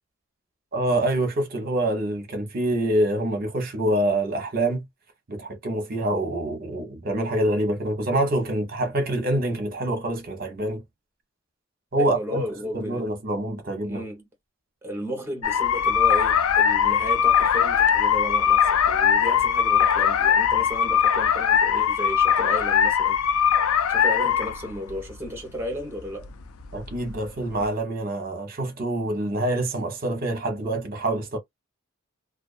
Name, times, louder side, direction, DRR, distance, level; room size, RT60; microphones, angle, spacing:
voice 1, 0.7-4.8 5.3-10.8 11.9-12.4 12.7-14.0 26.7-31.4, right 1 dB, 40° right, 0.8 m, -26 dB
voice 2, 12.0-13.1 13.9-14.2 14.8-23.2 23.9-26.3, equal, 10° right, 0.9 m, -33 dB
sound 1, 15.4-27.7, left 8 dB, 75° left, 0.4 m, -21 dB
2.5 x 2.3 x 2.4 m
head